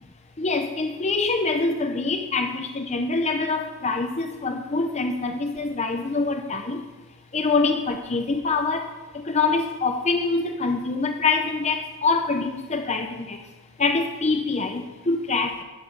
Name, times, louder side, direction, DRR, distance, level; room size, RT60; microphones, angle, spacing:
voice 1, 0.4-6.8 7.3-8.8 9.3-13.4 13.8-15.6, left 3 dB, 30° left, 6 dB, 0.6 m, -25 dB
11.5 x 9.5 x 5.4 m, 1.2 s
head